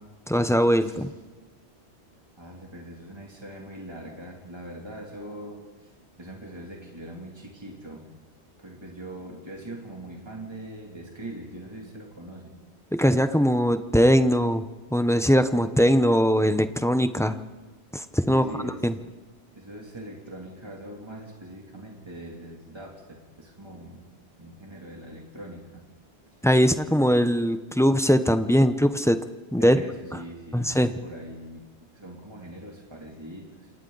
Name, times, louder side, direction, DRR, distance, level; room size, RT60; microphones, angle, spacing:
voice 1, 0.3-1.1 12.9-14.6 14.9-17.4 17.9-18.4 18.8-18.9 26.4-29.2 29.5-29.8 30.5-30.9, equal, 5° left, 9 dB, 0.7 m, -21 dB
voice 2, 0.8-1.1 2.4-5.9 6.2-8.0 8.6-12.5 18.3-18.9 19.6-24.0 24.4-25.8 26.3-26.4 29.6-33.7, right 1 dB, 25° right, -1 dB, 2.9 m, -42 dB
29.0 x 27.5 x 4.0 m, 1.2 s
omnidirectional pair, 1.1 m